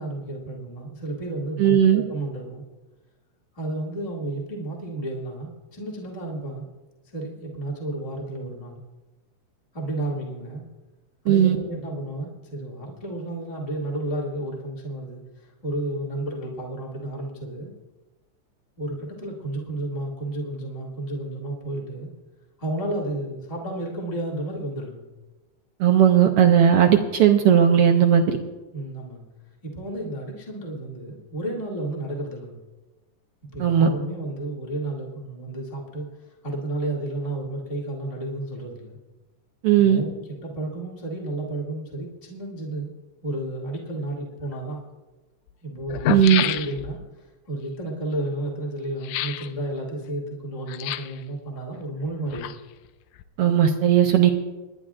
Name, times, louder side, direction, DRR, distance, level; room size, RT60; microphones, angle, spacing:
voice 1, 0.0-2.6 3.5-6.7 7.1-8.8 9.7-10.6 11.2-17.7 18.8-22.1 22.6-25.1 28.7-29.2 29.6-32.6 33.5-36.1 36.4-39.0 39.8-42.9 43.2-44.8 45.6-52.5, right 1 dB, 15° left, -3 dB, 2.1 m, -32 dB
voice 2, 1.6-2.0 11.3-11.6 25.8-28.4 33.6-33.9 39.6-40.0 46.1-46.4 53.4-54.3, right 9 dB, 70° right, 4 dB, 1.5 m, -17 dB
sound 1, 44.5-44.6 45.5-45.6 45.8-47.1 49.0-49.5 50.7-51.2 52.1-52.9 53.2-53.3, left 12 dB, 90° left, 2.1 m, -29 dB
29.0 x 11.0 x 2.5 m, 1.1 s
omnidirectional pair, 3.4 m